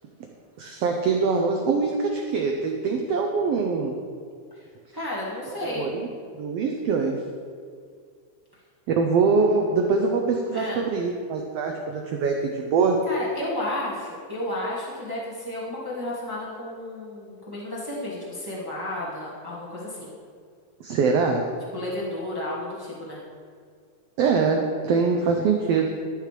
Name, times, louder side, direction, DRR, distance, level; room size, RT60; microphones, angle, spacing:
voice 1, 0.6-3.9 5.8-6.1 6.4-7.2 8.9-13.0 20.8-21.5 24.2-25.9, right 4 dB, 90° right, 2 dB, 1.3 m, -23 dB
voice 2, 4.9-5.9 10.5-10.8 13.0-20.1 21.7-23.2, left 1 dB, 15° right, -7 dB, 0.8 m, -32 dB
12.0 x 6.6 x 3.3 m, 2.1 s
omnidirectional pair, 3.5 m